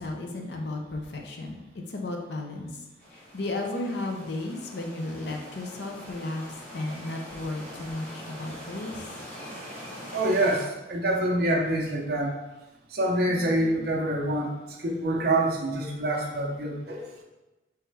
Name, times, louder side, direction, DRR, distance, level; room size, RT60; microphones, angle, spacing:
voice 1, 0.0-1.6 1.9-2.8 3.1-9.1, left 2 dB, 65° left, 2 dB, 0.6 m, -34 dB
sound 1, 3.0-10.6, equal, 10° left, 1.4 m, -43 dB
voice 2, 10.1-12.3 12.9-17.2, right 1 dB, 55° right, -1 dB, 0.6 m, -26 dB
3.4 x 3.1 x 4.5 m, 1.1 s
head